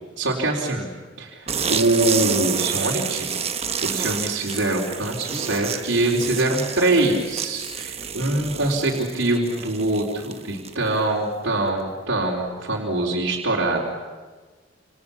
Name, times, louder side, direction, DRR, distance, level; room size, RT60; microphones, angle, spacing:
voice 1, 0.2-3.3 3.8-13.8, right 2 dB, 70° right, -5 dB, 4.1 m, -24 dB
sound 1, 1.5-11.0, right 7 dB, 30° right, 1.3 m, -29 dB
28.5 x 28.0 x 7.3 m, 1.4 s
head